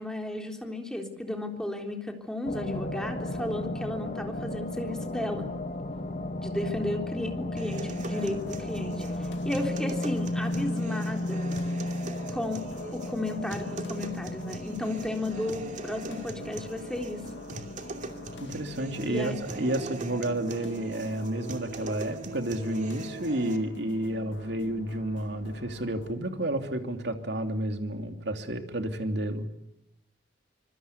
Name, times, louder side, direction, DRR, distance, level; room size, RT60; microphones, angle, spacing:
voice 1, 0.0-5.5 6.4-11.6 12.3-12.6 12.9-17.2 19.0-19.4, left 1 dB, 5° left, 3 dB, 3.7 m, -33 dB
sound 1, 2.4-21.1, left 1 dB, 45° left, 2.2 m, -35 dB
sound 2, 7.6-23.6, right 2 dB, 45° right, 2.7 m, -42 dB
sound 3, 8.0-26.1, left 2 dB, 90° left, 2.1 m, -46 dB
voice 2, 18.4-29.5, right 1 dB, 65° right, 6 dB, 2.9 m, -31 dB
25.5 x 24.0 x 8.2 m, 0.86 s
head